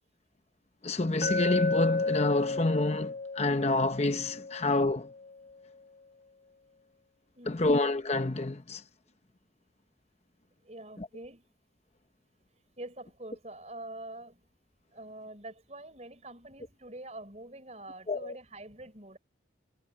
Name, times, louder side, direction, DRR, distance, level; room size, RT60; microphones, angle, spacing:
voice 1, 0.8-5.1 7.5-8.8 11.0-11.1 18.1-18.4, left 2 dB, 35° left, 0.9 m, -28 dB
Glass, 1.2-5.3, left 3 dB, 50° left, 1.2 m, -33 dB
voice 2, 7.3-7.7 10.6-11.4 12.8-14.5 14.9-19.2, right 1 dB, 35° right, 5.4 m, -45 dB
head